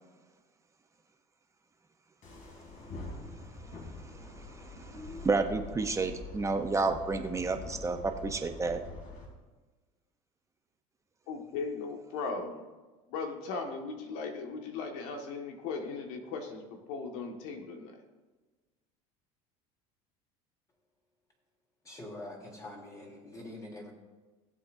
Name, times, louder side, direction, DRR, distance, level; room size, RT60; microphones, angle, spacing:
sound 1, 2.2-9.3, left 2 dB, 50° left, 3.6 m, -45 dB
voice 1, 4.4-8.8, right 3 dB, 20° right, 6 dB, 0.9 m, -31 dB
voice 2, 11.3-12.7 13.1-18.0, left 4 dB, 75° left, 3 dB, 1.9 m, -38 dB
voice 3, 21.8-23.9, left 1 dB, 20° left, -1 dB, 3.5 m, -45 dB
19.0 x 7.8 x 2.8 m, 1.3 s
supercardioid pair, 105°, 16 cm